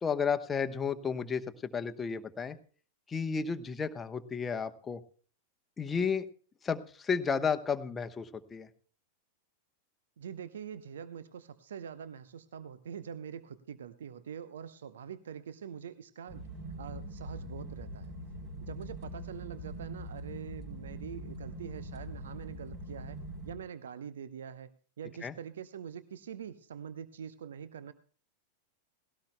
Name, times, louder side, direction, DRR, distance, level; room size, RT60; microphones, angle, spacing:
voice 1, 0.0-2.6 3.1-5.0 5.8-6.3 6.6-8.7 25.2-25.3, left 6 dB, 15° left, 7 dB, 1.0 m, -32 dB
voice 2, 10.2-16.4 16.8-18.1 18.6-24.7 25.0-27.9, right 8 dB, 65° right, 14 dB, 0.7 m, -44 dB
sound 1, 16.3-23.5, equal, 45° right, 4.2 m, -43 dB
19.0 x 17.0 x 2.2 m, 0.42 s
figure-of-eight pair, 90°, 0 cm